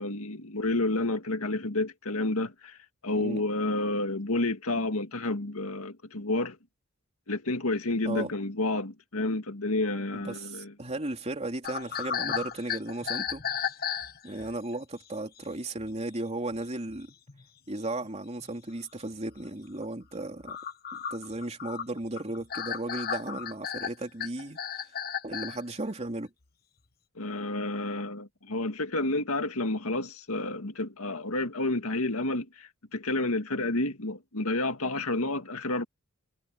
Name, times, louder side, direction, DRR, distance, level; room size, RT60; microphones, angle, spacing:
voice 1, 0.0-2.8 3.0-6.6 7.3-10.7 27.2-35.8, left 2 dB, 80° left, 2.0 m, -30 dB
voice 2, 10.1-13.4 14.2-17.1 17.7-20.6 20.9-24.6 25.2-26.3, right 2 dB, 30° right, 3.1 m, -35 dB
sound 1, 11.6-14.6 15.4-15.5 15.8-15.9 16.5-16.6 16.9-17.4 18.0-18.1 18.4-18.5 19.3-19.4 19.8-25.6, left 8 dB, 45° left, 1.3 m, -34 dB
head